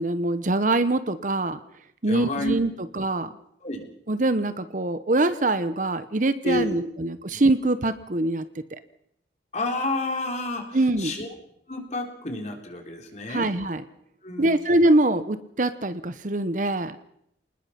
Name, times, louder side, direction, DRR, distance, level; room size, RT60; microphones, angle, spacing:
voice 1, 0.0-1.6 2.0-3.3 4.1-8.4 8.7-8.8 10.7-11.2 13.3-13.8 14.4-17.0, right 2 dB, 45° right, 12 dB, 0.9 m, -24 dB
voice 2, 2.1-2.5 3.6-3.9 6.4-6.9 7.3-7.4 9.5-11.3 11.7-13.5 14.2-14.6, left 2 dB, 40° left, 2 dB, 3.8 m, -30 dB
26.5 x 20.0 x 5.9 m, 0.72 s
head